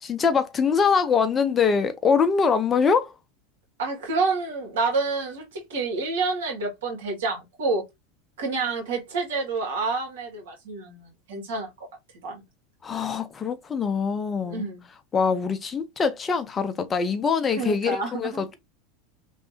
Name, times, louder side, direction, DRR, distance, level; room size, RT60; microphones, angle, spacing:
voice 1, 0.0-3.1 12.8-14.7 15.1-18.5, left 5 dB, 25° left, 0.6 m, -23 dB
voice 2, 3.8-7.8 8.4-11.7 12.2-12.4 14.4-14.8 17.6-18.4, right 3 dB, 70° right, 1.8 m, -28 dB
3.2 x 2.6 x 2.7 m
hypercardioid pair, 85°, 0 cm